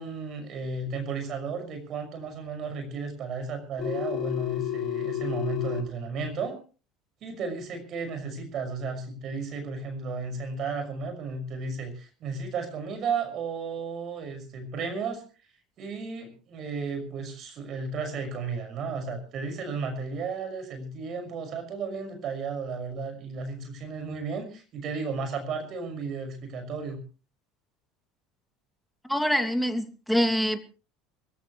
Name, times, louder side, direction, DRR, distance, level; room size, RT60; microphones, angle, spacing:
voice 1, 0.0-6.6 7.2-15.2 15.8-27.0, right 4 dB, 45° right, 6 dB, 6.0 m, -34 dB
Telephone, 3.8-5.8, left 13 dB, 45° left, 6.6 m, -31 dB
voice 2, 29.1-30.6, equal, ahead, 6 dB, 2.7 m, -25 dB
25.0 x 15.5 x 3.2 m, 0.37 s
hypercardioid pair, 70°, 0 cm